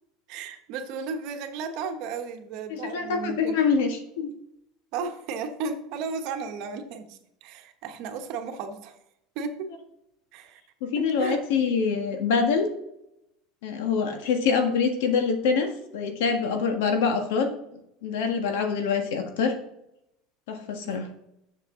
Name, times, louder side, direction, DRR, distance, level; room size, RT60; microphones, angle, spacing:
voice 1, 0.3-3.6 4.9-8.9 9.3-9.7 10.3-10.6 10.9-11.4 20.8-21.0, right 5 dB, 60° right, 6 dB, 1.2 m, -34 dB
voice 2, 2.7-4.3 10.8-12.7 13.6-17.5 18.0-19.5 20.5-21.1, left 5 dB, 80° left, 4 dB, 1.6 m, -25 dB
7.2 x 6.5 x 3.8 m, 0.81 s
supercardioid pair, 130°, 0 cm